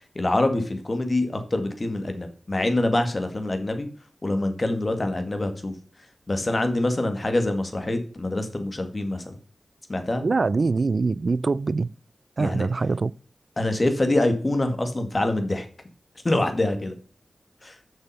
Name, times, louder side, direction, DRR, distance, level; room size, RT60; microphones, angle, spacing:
voice 1, 0.2-3.9 4.2-5.7 6.3-9.3 9.9-10.2 12.4-12.7 13.6-15.7 16.2-16.9 17.6-17.8, left 1 dB, 40° left, 1.8 m, -25 dB
voice 2, 10.2-11.9 12.4-13.1, right 4 dB, 60° right, 0.3 m, -23 dB
6.8 x 5.6 x 5.4 m
cardioid pair, 55°, 0 cm